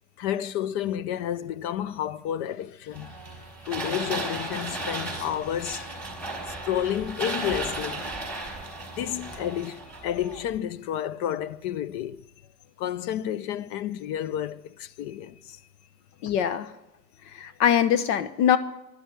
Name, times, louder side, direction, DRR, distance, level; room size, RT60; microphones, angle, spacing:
voice 1, 0.2-3.2 3.6-6.0 6.5-8.1 9.0-12.2 12.8-15.6, left 10 dB, 45° left, 0.6 m, -31 dB
sound 1, 2.9-10.6, right 2 dB, 5° left, 4.5 m, -35 dB
voice 2, 16.2-16.7 17.3-18.6, left 9 dB, 70° left, 1.2 m, -22 dB
11.5 x 11.0 x 9.3 m
supercardioid pair, 145°, 49 cm